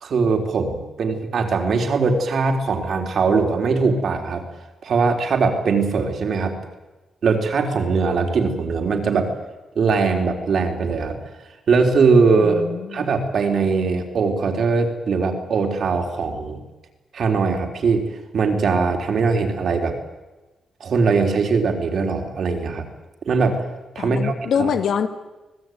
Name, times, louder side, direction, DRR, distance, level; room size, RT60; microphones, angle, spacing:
voice 1, 0.0-4.4 4.8-6.6 7.2-9.3 9.8-11.2 11.7-12.6 12.9-16.6 17.1-18.1 18.3-19.9 20.8-22.9 23.2-23.6 24.0-24.7, right 4 dB, 50° right, 4 dB, 3.9 m, -20 dB
voice 2, 12.3-13.1 24.0-25.1, left 7 dB, 60° left, 10 dB, 2.1 m, -24 dB
26.0 x 19.0 x 9.4 m, 1.1 s
wide cardioid pair, 165°, 0 cm